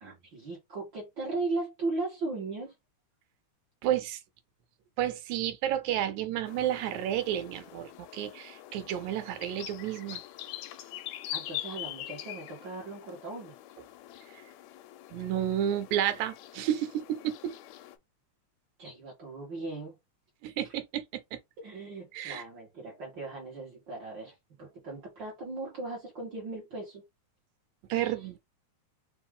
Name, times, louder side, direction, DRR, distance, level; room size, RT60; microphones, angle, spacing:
voice 1, 0.0-2.7 11.3-13.5 18.8-20.0 21.6-27.0 27.9-28.1, right 3 dB, 50° right, 1.6 m, -37 dB
voice 2, 3.8-4.2 5.0-10.2 14.3-14.4 15.1-17.6 20.4-21.4 22.1-22.4 27.9-28.4, right 11 dB, 80° right, 2.0 m, -31 dB
sound 1, 6.5-18.0, left 13 dB, 80° left, 1.7 m, -44 dB
4.7 x 2.6 x 3.5 m
omnidirectional pair, 3.4 m